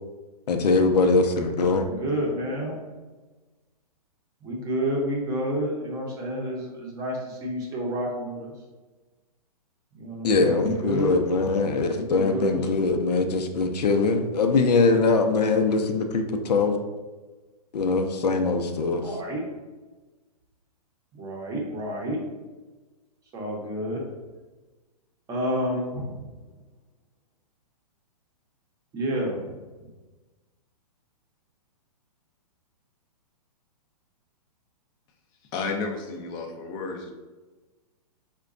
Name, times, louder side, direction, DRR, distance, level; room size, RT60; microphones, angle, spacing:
voice 1, 0.5-1.9 10.2-16.8 17.7-19.2, left 3 dB, 90° left, 5 dB, 0.5 m, -22 dB
voice 2, 1.9-2.8 4.4-8.5 9.9-11.2 11.9-12.6 19.0-19.4 21.1-22.2 23.3-24.0 25.3-26.1 28.9-29.4, right 1 dB, 15° right, -2 dB, 0.7 m, -29 dB
voice 3, 35.5-37.1, left 4 dB, 20° left, 3 dB, 0.4 m, -32 dB
5.0 x 2.2 x 2.4 m, 1.2 s
hypercardioid pair, 145°, 20 cm